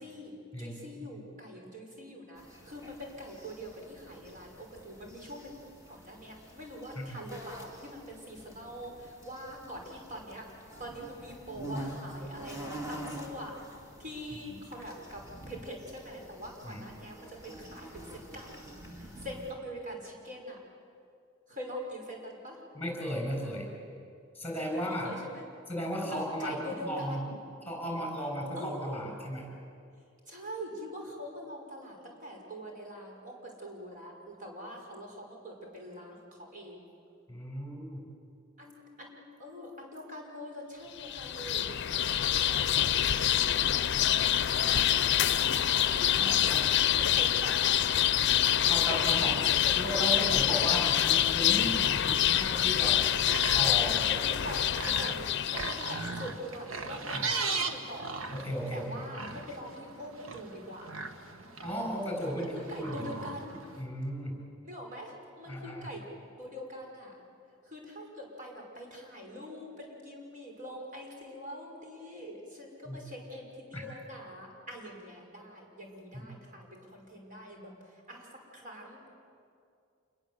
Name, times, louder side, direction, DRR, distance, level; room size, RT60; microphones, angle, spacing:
voice 1, 0.0-5.6 5.9-10.5 10.8-13.6 14.0-18.6 18.9-20.6 21.5-22.6 24.7-25.4 26.0-27.4 28.5-29.0 30.3-36.9 38.6-47.8 48.8-50.8 54.1-58.2 58.7-60.9 62.2-63.6 64.6-66.1 66.4-67.2 67.6-79.1, equal, 40° right, 0 dB, 5.8 m, -44 dB
voice 2, 0.5-1.1 7.0-7.2 14.5-14.6 16.6-16.8 22.7-23.7 24.3-25.1 25.7-27.2 27.7-29.5 37.3-38.0 44.6-44.8 46.2-46.6 48.7-49.4 49.7-53.0 53.5-54.1 57.1-57.3 58.3-59.0 61.6-63.1 63.8-64.3 65.5-65.9 72.9-73.0 73.7-73.8 76.1-76.3, equal, 10° left, 1 dB, 7.0 m, -35 dB
sound 1, 2.4-19.5, right 1 dB, 15° right, 3.5 m, -46 dB
sound 2, 41.0-56.1, left 11 dB, 60° left, 0.6 m, -26 dB
sound 3, 53.0-63.8, right 4 dB, 85° right, 1.7 m, -38 dB
27.0 x 22.0 x 8.1 m, 2.4 s
head